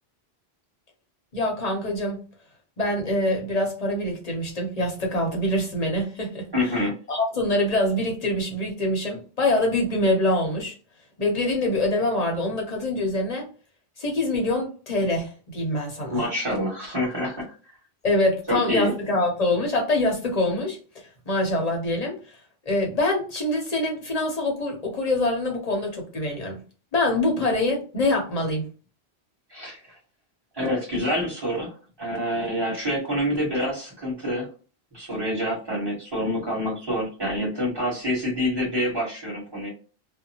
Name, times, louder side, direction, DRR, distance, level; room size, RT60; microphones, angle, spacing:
voice 1, 1.3-2.2 2.8-6.5 7.1-10.7 11.2-13.5 14.0-16.3 18.0-22.2 22.7-26.6 26.9-28.7, left 1 dB, 40° left, 0.8 m, -25 dB
voice 2, 6.5-6.9 16.1-17.5 18.5-18.9 29.5-30.0 30.5-31.7 32.0-34.5 34.9-39.7, equal, 25° right, 1.5 m, -27 dB
2.7 x 2.1 x 2.7 m
omnidirectional pair, 1.1 m